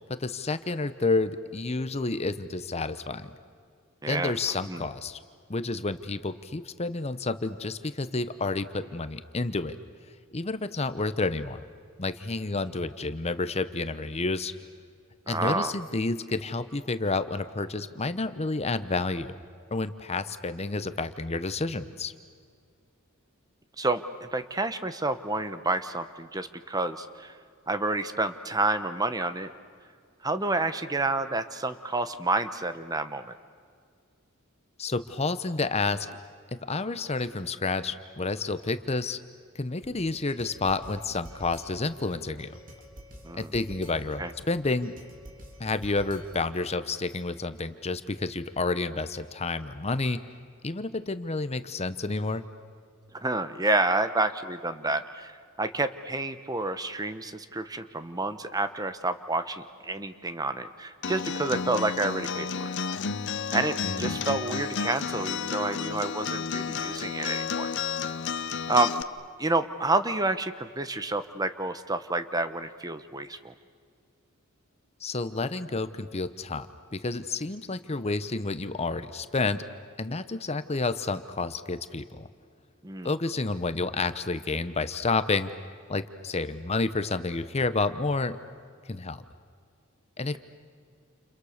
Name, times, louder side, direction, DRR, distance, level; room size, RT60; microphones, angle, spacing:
voice 1, 0.2-3.3 4.1-5.2 5.5-9.8 10.3-11.6 12.0-14.5 15.3-19.3 19.7-22.1 34.8-36.1 36.5-39.2 39.5-42.6 43.3-44.9 45.6-50.2 50.6-52.4 63.8-64.2 75.0-76.7 76.9-79.6 80.0-82.3 83.0-85.5 85.9-88.4 88.9-89.2 90.2-90.4, left 3 dB, 30° left, 12 dB, 0.9 m, -30 dB
voice 2, 4.0-4.3 4.7-4.8 15.3-15.7 23.8-27.4 27.7-29.5 30.2-33.3 43.2-43.5 44.2-44.3 53.1-62.7 63.5-67.7 68.7-68.9 69.4-73.5 82.8-83.1, right 2 dB, 20° right, 11 dB, 1.0 m, -29 dB
sound 1, 39.8-46.7, equal, 40° right, 3.9 m, -48 dB
Acoustic guitar, 61.0-69.0, left 6 dB, 55° left, 0.9 m, -32 dB
30.0 x 29.5 x 6.6 m, 2.1 s
head